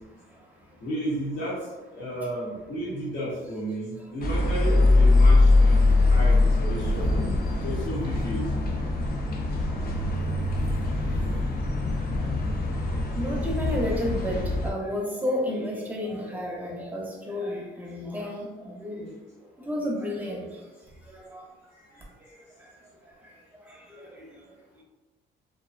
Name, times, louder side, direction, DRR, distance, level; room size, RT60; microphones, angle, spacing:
voice 1, 0.8-1.5 1.9-7.1 7.6-8.4, equal, 65° left, -8 dB, 0.9 m, -32 dB
sound 1, 4.2-14.7, left 2 dB, 50° left, 0.5 m, -22 dB
voice 2, 13.1-19.1 19.6-20.6 21.1-21.4 24.0-24.3, left 1 dB, 10° right, -2 dB, 0.6 m, -31 dB
2.4 x 2.1 x 2.4 m, 1.1 s
cardioid pair, 90°, 20 cm